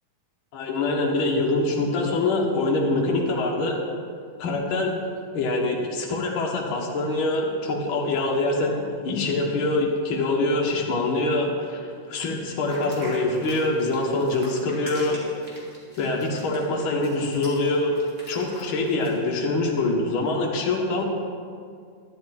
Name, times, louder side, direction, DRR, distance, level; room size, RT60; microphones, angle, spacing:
voice 1, 0.5-3.8 4.4-4.9 5.3-15.2 16.0-17.9 18.3-21.0, left 2 dB, 50° left, -1 dB, 2.0 m, -24 dB
sound 1, 12.7-19.2, equal, 25° right, 2.6 m, -43 dB
12.5 x 11.0 x 4.3 m, 2.2 s
omnidirectional pair, 3.5 m